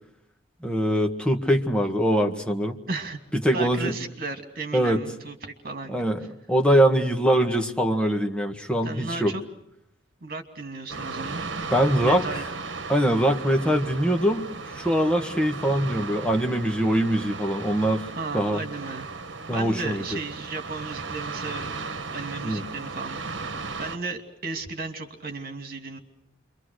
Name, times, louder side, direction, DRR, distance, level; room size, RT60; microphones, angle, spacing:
voice 1, 0.6-2.8 3.4-3.9 4.7-5.0 5.9-9.3 11.7-12.2 12.9-18.0 18.3-18.6 19.5-20.0 22.4-22.6, equal, 5° left, 4 dB, 1.7 m, -23 dB
voice 2, 2.9-3.2 3.5-6.0 8.8-9.4 10.2-11.4 12.0-12.5 18.2-19.1 19.5-21.7 22.1-26.0, right 3 dB, 50° right, 6 dB, 2.7 m, -34 dB
sound 1, 10.9-24.0, right 4 dB, 75° right, 1.4 m, -36 dB
28.5 x 24.0 x 6.5 m, 0.78 s
head